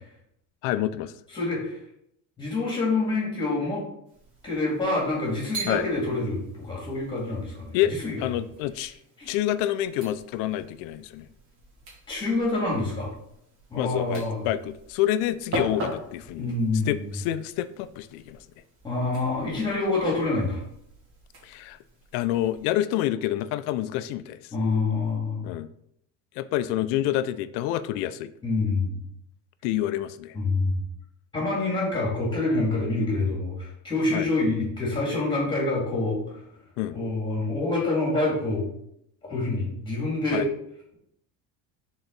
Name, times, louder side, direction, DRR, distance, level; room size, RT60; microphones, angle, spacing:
voice 1, 0.6-1.1 5.7-5.9 7.7-9.0 9.3-11.3 13.8-16.5 16.9-18.4 21.4-21.8 22.1-24.5 25.4-25.7 26.4-28.3 29.6-30.3 34.1-34.3 36.8-37.0 40.3-40.5, left 13 dB, 85° left, 14 dB, 0.5 m, -28 dB
voice 2, 1.3-1.8 2.4-3.8 4.4-8.2 9.2-9.3 12.1-13.1 13.7-14.4 16.4-17.1 18.8-20.6 24.5-25.5 28.4-29.0 30.3-30.8 31.3-36.4 36.9-38.6 39.2-40.5, left 2 dB, 15° left, -3 dB, 2.3 m, -26 dB
sound 1, 4.1-22.7, right 1 dB, 45° right, 2.3 m, -42 dB
6.2 x 4.0 x 3.9 m, 0.74 s
cardioid pair, 160°, 33 cm